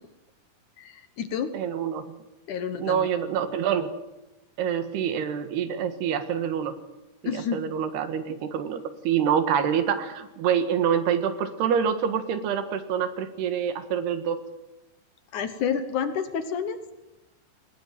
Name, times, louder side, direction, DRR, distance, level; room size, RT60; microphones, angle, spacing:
voice 1, 0.8-1.5 2.5-3.1 7.2-7.6 15.3-16.8, left 7 dB, 65° left, 9 dB, 2.3 m, -29 dB
voice 2, 1.5-2.1 2.8-4.0 4.6-6.7 7.2-14.4, right 8 dB, 85° right, 9 dB, 3.8 m, -26 dB
20.5 x 20.0 x 9.2 m, 1.0 s
omnidirectional pair, 4.5 m